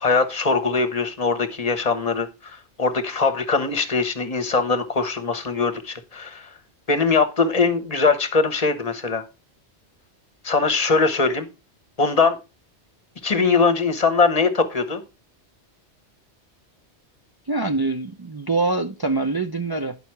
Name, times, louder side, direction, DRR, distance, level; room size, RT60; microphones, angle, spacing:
voice 1, 0.0-6.5 6.9-9.2 10.4-11.5 12.0-12.4 13.2-15.0, left 4 dB, 35° left, 1.2 m, -21 dB
voice 2, 17.5-20.0, right 3 dB, 30° right, 0.4 m, -24 dB
10.0 x 5.5 x 4.5 m
omnidirectional pair, 1.2 m